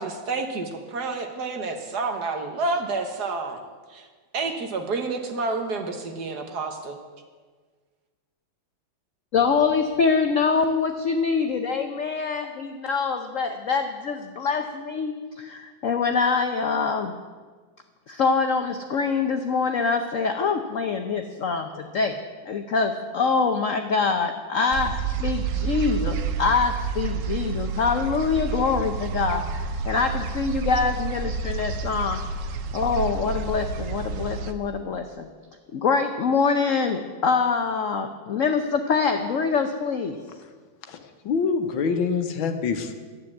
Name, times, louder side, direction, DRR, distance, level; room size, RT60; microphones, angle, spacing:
voice 1, 0.0-3.6 3.9-4.1 4.3-7.0, right 3 dB, 55° right, 5 dB, 1.6 m, -29 dB
voice 2, 9.3-17.1 18.1-22.2 22.4-32.2 32.7-35.3 35.7-40.2, left 5 dB, 60° left, 6 dB, 0.8 m, -24 dB
sound 1, 24.7-34.5, right 5 dB, 75° right, 0.7 m, -29 dB
voice 3, 40.8-42.9, left 5 dB, 80° left, 7 dB, 1.8 m, -26 dB
12.0 x 8.6 x 8.2 m, 1.5 s
omnidirectional pair, 2.2 m